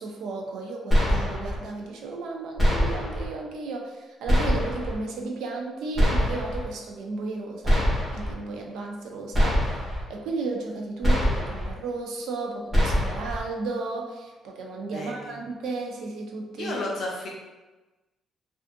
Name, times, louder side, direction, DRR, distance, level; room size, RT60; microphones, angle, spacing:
voice 1, 0.0-16.7, right 3 dB, 75° right, 1 dB, 0.4 m, -34 dB
sound 1, 0.9-1.6 2.6-3.3 4.3-5.0 6.0-6.7 7.6-8.3 9.3-10.0 11.0-11.7 12.7-13.4, equal, ahead, 0.8 m, -23 dB
voice 2, 14.9-15.3 16.5-17.3, left 2 dB, 50° left, -2 dB, 0.6 m, -32 dB
2.4 x 2.4 x 2.6 m, 1.2 s
cardioid pair, 160°, 0 cm